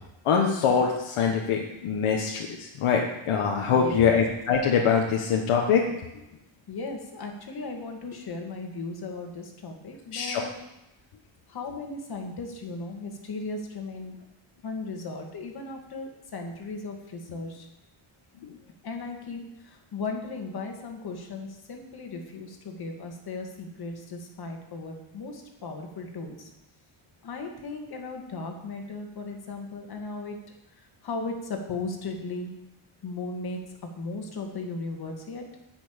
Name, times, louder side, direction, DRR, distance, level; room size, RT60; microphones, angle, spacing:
voice 1, 0.2-5.8 10.1-10.4, left 6 dB, 80° left, 0 dB, 1.4 m, -24 dB
voice 2, 3.7-4.2 6.7-10.5 11.5-14.2 14.6-17.7 18.8-26.5 27.2-30.4 30.8-32.5 33.0-33.6 34.0-35.4, left 3 dB, 50° left, 3 dB, 2.2 m, -36 dB
10.5 x 6.1 x 8.9 m, 0.91 s
cardioid pair, 160°, 49 cm